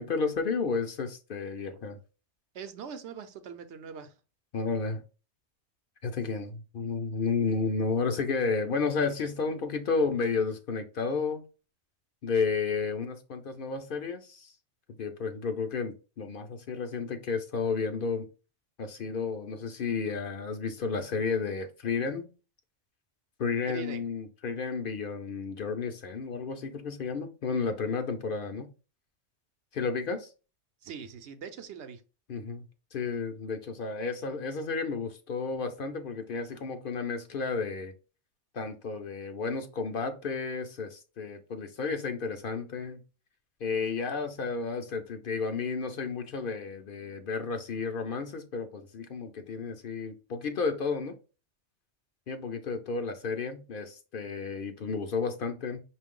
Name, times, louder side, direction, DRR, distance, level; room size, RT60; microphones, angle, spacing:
voice 1, 0.0-2.0 4.5-5.0 6.0-11.4 12.2-14.5 15.0-18.3 18.8-22.3 23.4-28.7 29.7-30.3 32.3-32.6 32.9-37.9 38.5-43.0 43.6-51.2 52.3-55.8, left 4 dB, 55° left, 0.7 m, -32 dB
voice 2, 2.5-4.2 23.7-24.0 30.8-32.0, right 7 dB, 75° right, 0.9 m, -42 dB
5.8 x 2.5 x 3.6 m
omnidirectional pair, 1.2 m